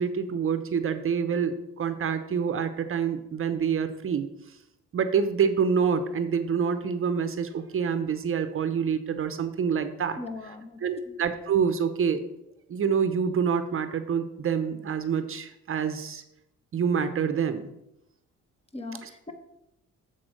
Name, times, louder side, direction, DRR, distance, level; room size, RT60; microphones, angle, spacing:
voice 1, 0.0-4.3 4.9-10.2 10.8-12.3 12.7-16.2 16.7-17.7 19.0-19.3, right 6 dB, 45° right, 10 dB, 0.7 m, -27 dB
voice 2, 10.2-10.8 11.1-11.2 18.7-19.3, left 2 dB, 20° left, 7 dB, 1.1 m, -39 dB
7.7 x 4.1 x 6.2 m, 0.85 s
cardioid pair, 90°, 30 cm